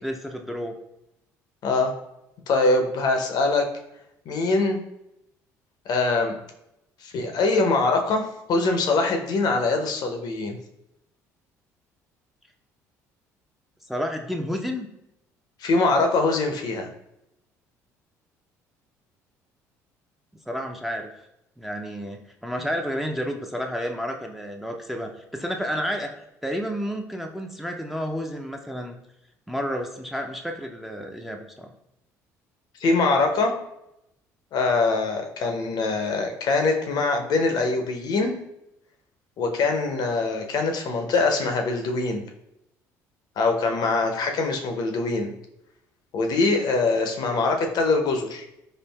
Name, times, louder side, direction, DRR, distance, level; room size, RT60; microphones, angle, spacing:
voice 1, 0.0-0.7 13.9-14.9 20.5-21.1 21.6-26.1 26.4-29.0 29.5-31.7, equal, ahead, 2 dB, 0.4 m, -30 dB
voice 2, 1.6-1.9 2.5-3.7 4.3-4.8 5.9-6.3 7.0-10.6 15.6-16.9 32.8-33.5 34.5-38.3 39.4-42.2 43.4-45.3 46.1-48.4, left 3 dB, 55° left, 3 dB, 0.6 m, -23 dB
4.4 x 2.5 x 2.2 m, 0.84 s
hypercardioid pair, 60°, 8 cm